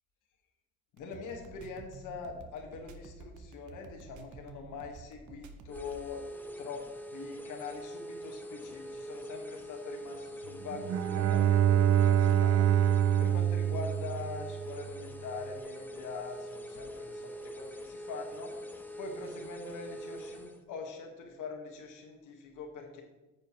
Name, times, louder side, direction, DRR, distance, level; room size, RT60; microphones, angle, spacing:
voice 1, 1.0-6.2 6.6-6.8 7.1-12.7 13.2-18.7 19.0-23.0, left 4 dB, 85° left, 2 dB, 1.6 m, -43 dB
sound 1, 1.0-6.1, right 4 dB, 80° right, 0.9 m, -50 dB
sound 2, 5.7-20.6, equal, 5° left, 0.8 m, -43 dB
Bowed string instrument, 10.7-14.8, right 10 dB, 55° right, 0.4 m, -26 dB
9.5 x 7.0 x 3.1 m, 1.1 s
cardioid pair, 90°, 30 cm